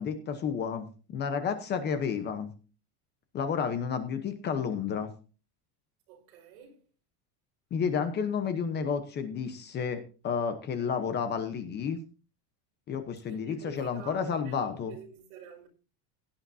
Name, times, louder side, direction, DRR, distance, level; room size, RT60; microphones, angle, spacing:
voice 1, 0.0-2.5 3.3-5.1 7.7-12.0 12.9-14.9, left 6 dB, 25° left, 0.9 m, -31 dB
voice 2, 6.1-6.8 13.3-15.7, right 7 dB, 70° right, 5.2 m, -48 dB
17.0 x 10.0 x 2.7 m
cardioid pair, 180°, 44 cm